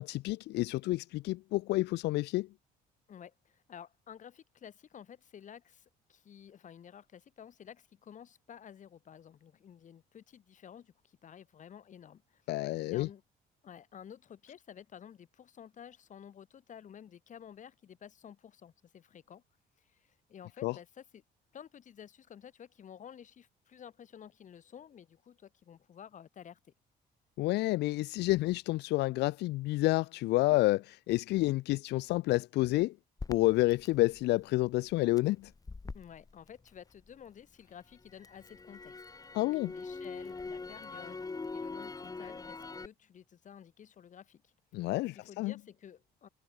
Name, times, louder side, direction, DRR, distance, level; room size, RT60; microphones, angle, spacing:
voice 1, 0.0-2.5 12.5-13.1 20.6-20.7 27.4-32.9 33.3-35.5 39.3-39.7 44.7-45.5, left 19 dB, 85° left, 1.6 m, -29 dB
voice 2, 3.1-12.4 12.9-13.2 13.6-19.4 19.8-21.2 21.5-26.6 35.9-39.0 39.4-44.5 45.1-46.3, left 8 dB, 45° left, 6.2 m, -52 dB
Crackle, 33.2-37.3 37.7-42.9, left 3 dB, 20° left, 5.6 m, -43 dB
cardioid pair, 110°, 17 cm